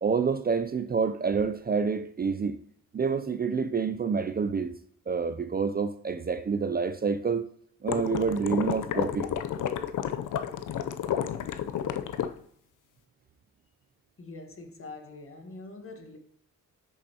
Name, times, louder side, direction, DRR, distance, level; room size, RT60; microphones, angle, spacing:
voice 1, 0.0-2.6 2.9-4.7 5.1-7.4 7.8-9.3, right 5 dB, 30° right, 0.4 m, -28 dB
sound 1, 7.9-12.3, left 9 dB, 65° left, 0.6 m, -31 dB
voice 2, 14.2-16.2, left 3 dB, 40° left, 1.4 m, -44 dB
8.0 x 6.4 x 2.9 m
cardioid pair, 70°, 33 cm